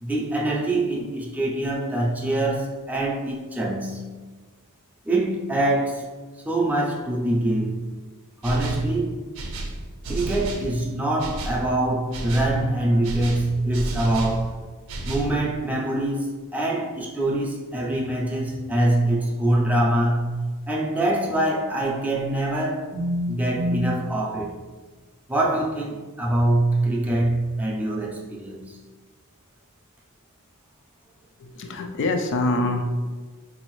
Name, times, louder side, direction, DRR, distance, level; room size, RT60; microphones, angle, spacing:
voice 1, 0.0-4.2 5.0-6.1 6.4-7.9 8.4-9.2 10.1-14.6 15.0-24.6 25.3-28.8, right 1 dB, 5° right, 0.5 m, -24 dB
sound 1, 8.4-8.9 9.3-10.7 11.2-11.6 12.1-12.6 13.0-14.4 14.9-15.3, right 1 dB, 65° right, 0.5 m, -31 dB
voice 2, 31.4-32.8, left 2 dB, 55° left, 0.4 m, -25 dB
4.0 x 2.7 x 3.0 m
head